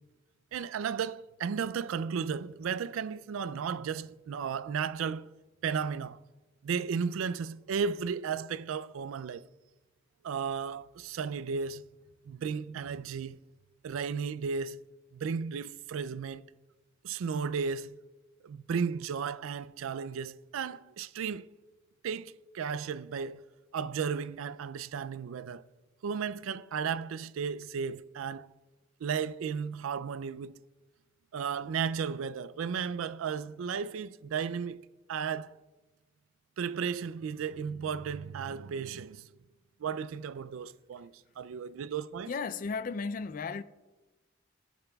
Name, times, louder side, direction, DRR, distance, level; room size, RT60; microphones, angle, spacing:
voice 1, 0.5-5.3 5.6-6.2 6.6-9.5 10.2-11.8 12.3-13.4 13.8-14.8 15.1-16.5 17.0-18.0 18.4-21.5 22.0-23.4 23.7-25.7 26.0-28.5 29.0-30.6 31.3-35.6 36.6-39.3 39.8-42.3, right 6 dB, 85° right, 0.3 m, -34 dB
voice 2, 42.3-43.6, left 4 dB, 40° left, 0.3 m, -34 dB
17.5 x 8.9 x 2.3 m
head